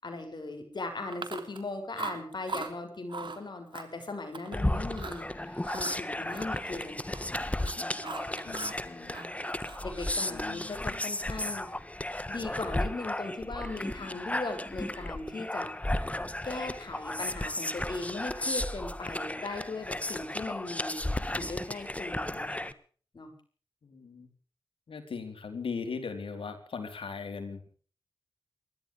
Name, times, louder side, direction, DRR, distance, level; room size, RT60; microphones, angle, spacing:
voice 1, 0.0-7.2 7.6-8.5 8.8-9.3 9.8-11.7 12.3-15.7 16.4-21.0 21.3-22.7 23.1-23.3, left 3 dB, 55° left, 5 dB, 6.9 m, -39 dB
Chewing mastication, 1.1-1.7 2.0-2.7 3.1-3.4 3.7-4.6 4.9-5.2 5.6-7.3 7.5-8.8 9.1-10.5, right 4 dB, 60° right, 3.2 m, -40 dB
sound 1, 4.5-22.7, left 1 dB, 15° left, 1.5 m, -34 dB
voice 2, 10.3-11.1 23.8-24.3 24.9-27.7, left 5 dB, 75° left, 7 dB, 4.1 m, -39 dB
29.5 x 13.5 x 3.5 m, 0.43 s
cardioid pair, 50°, 9 cm